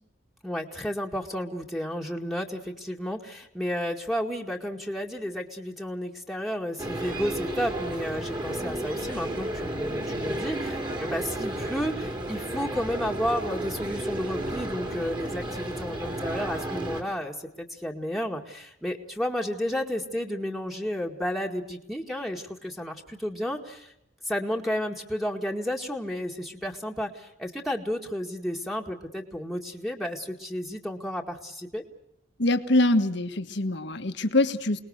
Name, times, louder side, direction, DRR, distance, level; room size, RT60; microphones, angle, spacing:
voice 1, 0.4-23.9 24.3-31.8, equal, ahead, -1 dB, 2.0 m, -32 dB
sound 1, 6.8-17.0, right 1 dB, 25° right, 3.1 m, -32 dB
voice 2, 32.4-34.8, left 2 dB, 65° left, 8 dB, 1.6 m, -24 dB
28.5 x 20.0 x 6.6 m, 0.77 s
head